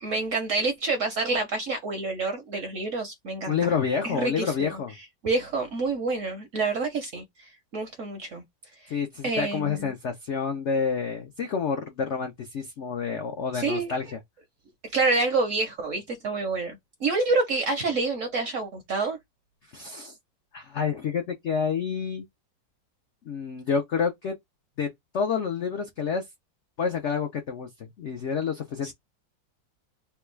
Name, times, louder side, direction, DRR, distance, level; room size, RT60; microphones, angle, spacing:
voice 1, 0.0-3.7 4.0-4.8 5.2-8.4 8.8-8.9 9.2-9.9 13.5-13.9 14.8-19.2 28.8-28.9, right 3 dB, 60° right, 0.8 m, -28 dB
voice 2, 3.5-5.0 8.9-14.2 19.7-20.2 20.5-22.2 23.2-24.4 24.8-24.9 25.1-26.2 26.8-28.9, left 6 dB, 80° left, 0.6 m, -28 dB
3.4 x 2.2 x 3.1 m
omnidirectional pair, 2.0 m